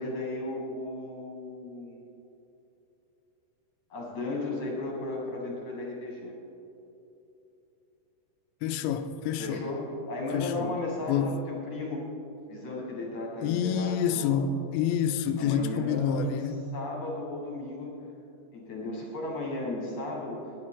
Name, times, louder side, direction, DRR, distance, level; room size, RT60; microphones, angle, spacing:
voice 1, 0.0-2.0 3.9-6.3 9.4-12.0 12.5-14.4 15.4-17.9 18.5-20.4, left 2 dB, 60° left, 2.1 m, -35 dB
voice 2, 8.6-9.7 10.3-10.8 11.1-11.3 13.4-16.6, left 7 dB, 85° left, 2.7 m, -28 dB
17.0 x 10.5 x 3.7 m
omnidirectional pair, 5.3 m